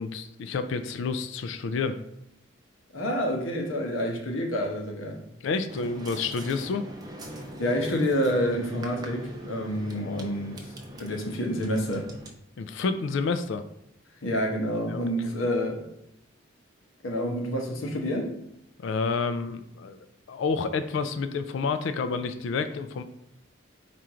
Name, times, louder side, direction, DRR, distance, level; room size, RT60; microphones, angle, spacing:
voice 1, 0.0-2.0 5.4-6.9 10.0-10.4 12.6-13.6 14.9-15.0 18.8-20.0 20.3-23.0, left 4 dB, 65° left, 0.3 m, -29 dB
voice 2, 2.9-5.2 7.6-10.6 11.0-12.1 14.2-15.8 17.0-18.3, equal, 80° left, 0.9 m, -28 dB
sound 1, 5.7-12.3, equal, 20° right, 0.5 m, -41 dB
4.3 x 2.5 x 4.7 m
head